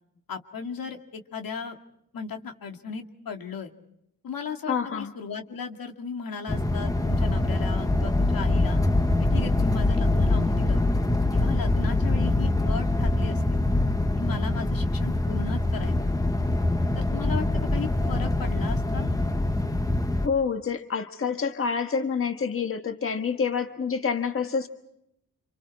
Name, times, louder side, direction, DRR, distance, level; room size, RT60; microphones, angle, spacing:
voice 1, 0.3-1.8 2.1-3.7 4.2-8.8 9.2-10.8 11.3-13.4 14.2-16.0 17.0-19.1, left 6 dB, 90° left, 4 dB, 2.3 m, -36 dB
voice 2, 4.7-5.1 20.2-24.7, left 6 dB, 40° left, 6 dB, 1.5 m, -27 dB
sound 1, 6.5-20.3, left 2 dB, 10° left, 1.0 m, -24 dB
29.0 x 27.5 x 4.7 m, 0.77 s
wide cardioid pair, 155°, 34 cm